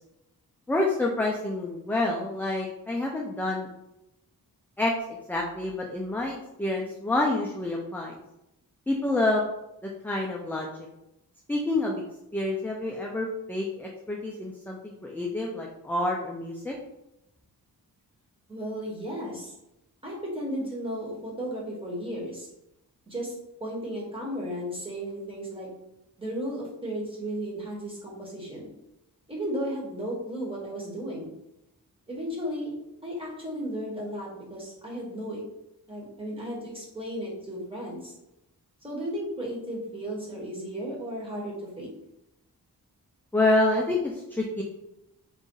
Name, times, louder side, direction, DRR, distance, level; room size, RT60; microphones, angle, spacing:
voice 1, 0.7-3.7 4.8-8.2 8.9-9.5 9.8-10.7 11.5-12.0 12.3-16.7 43.3-44.6, left 2 dB, 5° left, -2 dB, 0.4 m, -28 dB
voice 2, 18.5-19.5 20.0-22.5 23.1-23.3 23.6-25.7 26.2-28.7 29.3-31.3 32.1-32.8 33.0-35.4 35.9-38.1 38.8-41.9, equal, 15° right, -4 dB, 1.4 m, -34 dB
4.0 x 2.5 x 3.8 m, 0.87 s
wide cardioid pair, 115°, 36 cm